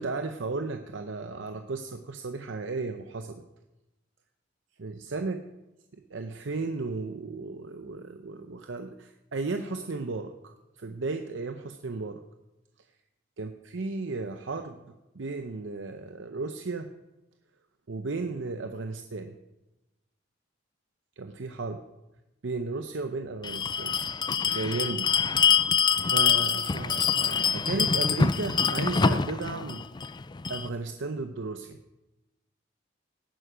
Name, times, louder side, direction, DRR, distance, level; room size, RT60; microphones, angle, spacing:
voice 1, 0.0-3.4 4.8-5.5 6.1-12.2 13.4-16.9 17.9-19.4 21.2-21.8 22.4-24.0 24.4-25.2 26.0-29.9 30.5-31.8, right 3 dB, 75° right, 7 dB, 0.7 m, -34 dB
Bell, 23.4-30.7, left 6 dB, 25° left, 0.4 m, -25 dB
17.0 x 9.2 x 5.0 m, 1.0 s
head